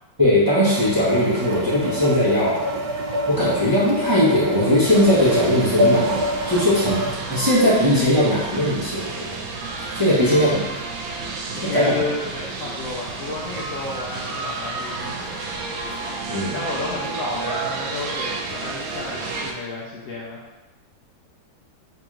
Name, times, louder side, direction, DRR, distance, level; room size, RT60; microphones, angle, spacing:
voice 1, 0.2-2.6 3.3-9.3 9.9-10.6 11.6-12.0 16.3-16.6, left 1 dB, 15° right, -9 dB, 0.9 m, -19 dB
sound 1, 0.6-7.1, equal, 70° right, 0.9 m, -26 dB
sound 2, 4.9-19.5, right 3 dB, 85° right, 1.4 m, -31 dB
voice 2, 10.1-10.9 11.2-15.4 16.5-20.4, left 3 dB, 70° left, -4 dB, 0.7 m, -32 dB
3.6 x 2.9 x 4.8 m, 1.1 s
omnidirectional pair, 2.1 m